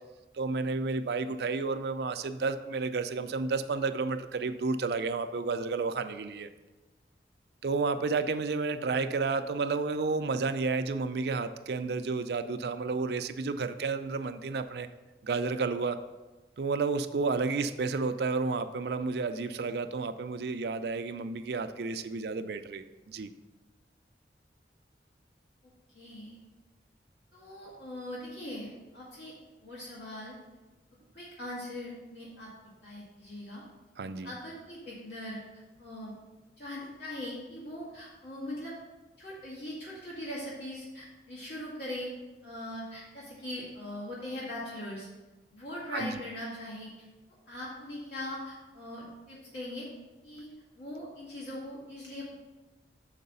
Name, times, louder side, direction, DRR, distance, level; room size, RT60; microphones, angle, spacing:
voice 1, 0.3-6.5 7.6-14.9 15.2-16.0 16.6-23.3 34.0-34.3 45.9-46.2, right 4 dB, 65° right, 9 dB, 0.4 m, -31 dB
voice 2, 25.9-26.4 27.3-29.3 29.6-30.4 31.1-32.5 32.8-33.6 34.2-35.4 35.8-36.2 36.6-38.8 39.2-42.1 42.4-45.1 45.5-46.9 47.5-49.9 50.2-50.5 50.8-52.3, left 1 dB, 75° left, -7 dB, 1.9 m, -40 dB
6.6 x 4.7 x 5.4 m, 1.1 s
head